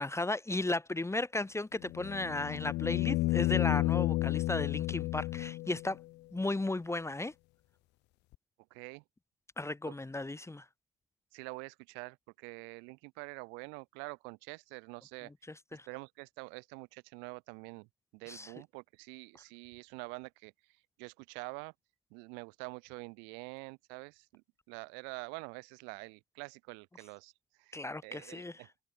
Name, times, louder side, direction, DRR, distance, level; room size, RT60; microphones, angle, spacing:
voice 1, 0.0-6.0 6.3-7.3 9.6-10.6 15.7-15.9 18.3-18.5 27.7-28.5, left 2 dB, 15° left, 1.5 m, -35 dB
sound 1, 1.8-5.9 8.3-8.4, left 19 dB, 70° left, 1.2 m, -31 dB
voice 2, 8.7-9.0 9.8-9.9 11.3-15.3 15.9-21.7 22.1-27.3 27.6-28.7, right 33 dB, 75° right, 5.4 m, -46 dB
hypercardioid pair, 50°, 19 cm